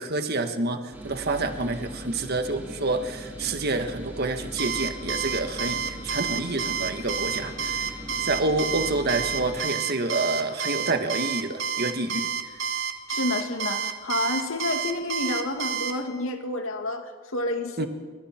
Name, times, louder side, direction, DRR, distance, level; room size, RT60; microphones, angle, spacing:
voice 1, 0.0-7.9 8.2-12.6 17.8-17.9, right 2 dB, 50° right, 7 dB, 1.5 m, -28 dB
sound 1, 0.9-9.6, equal, 10° right, 4.4 m, -40 dB
Alarm, 4.6-15.9, right 6 dB, 70° right, 2.1 m, -29 dB
voice 2, 13.1-17.9, left 2 dB, 85° left, 5 dB, 2.4 m, -29 dB
29.5 x 24.5 x 4.4 m, 1.5 s
head